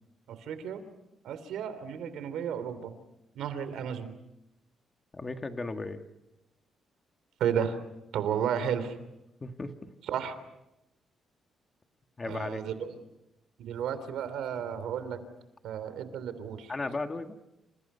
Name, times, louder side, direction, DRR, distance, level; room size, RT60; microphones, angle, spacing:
voice 1, 0.3-0.8 1.2-2.9 3.3-4.1 7.4-7.8 8.1-8.9 10.0-10.4 12.2-13.0 13.6-15.2 15.6-16.7, right 8 dB, 90° right, 12 dB, 3.2 m, -33 dB
voice 2, 5.1-6.0 9.4-9.9 12.2-12.6 16.7-17.4, left 3 dB, 20° left, 6 dB, 1.8 m, -35 dB
28.5 x 28.0 x 5.6 m, 0.90 s
cardioid pair, 145°, 0 cm